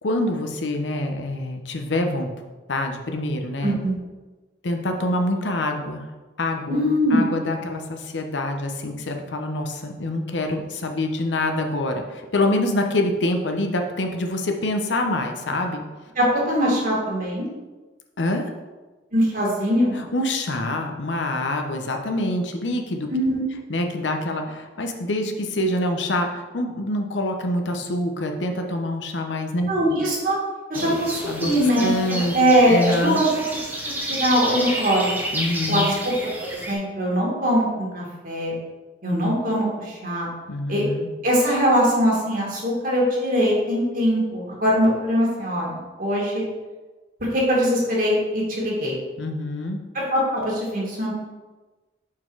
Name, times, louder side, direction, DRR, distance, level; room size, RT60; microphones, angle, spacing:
voice 1, 0.0-2.3 2.7-3.8 4.6-6.0 6.4-6.8 7.1-15.8 18.2-18.4 19.9-23.1 23.7-29.7 30.7-32.4 32.7-33.2 35.3-36.0 40.5-41.1 49.2-49.8, left 1 dB, 85° left, 4 dB, 0.8 m, -26 dB
voice 2, 3.6-3.9 6.7-7.2 16.2-17.5 19.1-20.0 23.1-23.4 29.7-30.4 30.7-31.1 31.4-31.9 32.3-33.3 33.8-35.2 35.7-35.8 36.5-38.5 39.0-40.3 40.7-40.8 41.2-46.4 47.3-48.9 49.9-51.1, equal, 50° right, -4 dB, 1.9 m, -21 dB
sound 1, 30.7-36.7, right 1 dB, 10° right, 0.8 m, -30 dB
5.9 x 4.6 x 4.6 m, 1.2 s
head